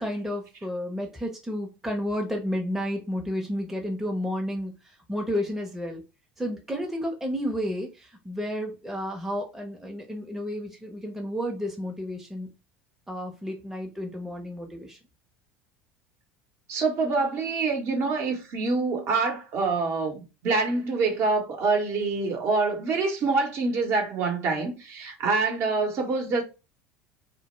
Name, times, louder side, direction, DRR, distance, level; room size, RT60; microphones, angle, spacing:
voice 1, 0.0-4.7 5.1-6.0 6.4-12.5 13.1-15.0, equal, 5° right, 0.6 m, -31 dB
voice 2, 16.7-26.4, right 3 dB, 50° right, 0.8 m, -26 dB
2.1 x 2.1 x 3.0 m
hypercardioid pair, 70°, 6 cm